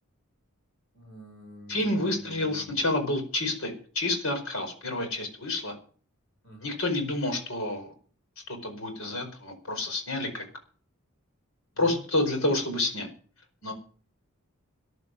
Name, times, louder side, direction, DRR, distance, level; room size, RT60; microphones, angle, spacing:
voice 1, 0.9-2.8 6.4-6.7 11.7-12.0, equal, 55° left, 1 dB, 6.0 m, -47 dB
voice 2, 1.7-5.7 6.6-7.9 8.5-10.4 11.8-13.1 13.6-13.7, left 2 dB, 70° left, 5 dB, 4.9 m, -29 dB
14.5 x 11.0 x 6.4 m, 0.42 s
head